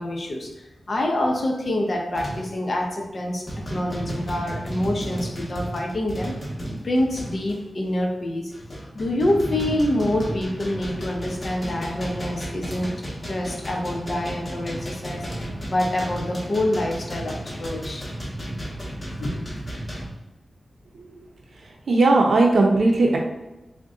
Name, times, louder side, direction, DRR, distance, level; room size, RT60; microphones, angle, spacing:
voice 1, 0.0-6.4 6.8-8.5 8.9-12.9 13.2-18.1 19.2-19.5, left 1 dB, 45° left, 1 dB, 0.6 m, -26 dB
sound 1, 1.2-1.4 2.1-2.6 3.0-3.2 3.5-7.6 8.2-20.1, equal, 25° left, 1.0 m, -33 dB
voice 2, 21.9-23.2, right 2 dB, 75° right, 0 dB, 0.5 m, -17 dB
3.7 x 2.2 x 3.6 m, 0.99 s
wide cardioid pair, 145°, 0 cm